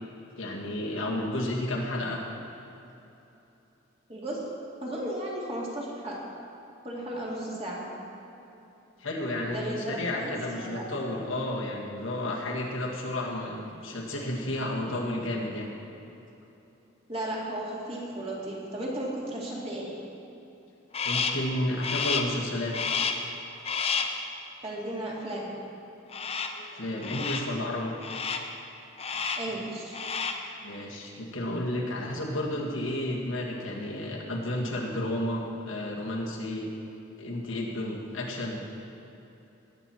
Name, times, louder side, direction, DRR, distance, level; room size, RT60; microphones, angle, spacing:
voice 1, 0.4-2.2 9.0-15.7 21.0-22.8 26.7-27.9 30.6-36.7 37.2-38.6, left 1 dB, 85° left, -2 dB, 2.0 m, -32 dB
voice 2, 4.1-4.5 4.8-6.2 6.8-7.8 9.5-10.8 17.1-19.9 24.6-25.5 29.1-30.0, right 1 dB, 30° right, -4 dB, 2.4 m, -35 dB
Crow, 20.9-21.5 21.8-22.4 22.7-23.3 23.6-24.2 26.1-26.6 27.0-27.5 28.0-28.5 29.0-29.5 29.9-30.5, left 5 dB, 30° left, 0.6 m, -30 dB
19.0 x 8.1 x 4.5 m, 3.0 s
head